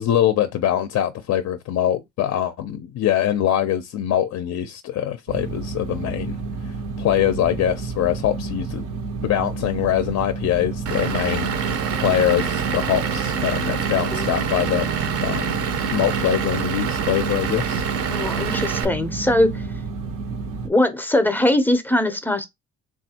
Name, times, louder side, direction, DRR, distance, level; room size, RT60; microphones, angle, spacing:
voice 1, 0.0-6.4 6.7-8.8 9.2-14.9 15.2-15.6 15.9-17.8, left 11 dB, 60° left, 0.4 m, -23 dB
sound 1, 5.3-20.7, right 4 dB, 90° right, 0.7 m, -31 dB
Vehicle / Engine, 10.9-18.9, right 7 dB, 50° right, 0.5 m, -26 dB
voice 2, 18.1-19.6 20.6-22.4, left 1 dB, 5° left, 0.5 m, -21 dB
3.3 x 2.4 x 2.7 m
cardioid pair, 90°, 30 cm